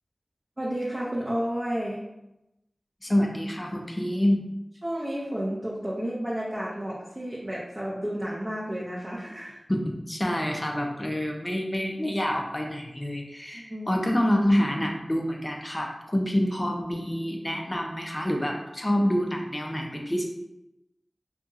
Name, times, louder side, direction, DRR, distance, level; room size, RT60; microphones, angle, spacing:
voice 1, 0.6-2.0 4.8-9.6 13.5-13.9, equal, 25° right, -6 dB, 0.5 m, -31 dB
voice 2, 3.0-4.4 9.7-20.2, equal, 20° left, 1 dB, 0.4 m, -27 dB
2.8 x 2.7 x 2.3 m, 0.90 s
wide cardioid pair, 70°, 0 cm